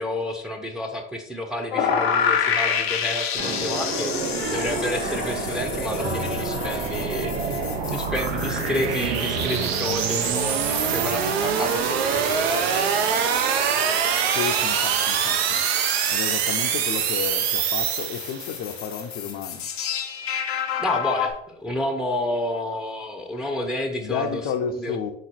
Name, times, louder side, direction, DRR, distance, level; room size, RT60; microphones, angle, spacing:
voice 1, 0.0-7.6 7.9-13.0 20.8-25.0, left 1 dB, ahead, 4 dB, 0.5 m, -30 dB
sound 1, 1.7-21.3, left 7 dB, 90° left, 0.7 m, -30 dB
sound 2, 3.4-9.7, right 2 dB, 50° right, 1.2 m, -30 dB
sound 3, 4.1-18.6, right 7 dB, 90° right, 0.5 m, -25 dB
voice 2, 14.3-15.6 16.1-19.7 24.0-25.1, left 8 dB, 50° left, 3 dB, 0.5 m, -31 dB
3.8 x 3.0 x 4.2 m, 0.76 s
hypercardioid pair, 85°, 30 cm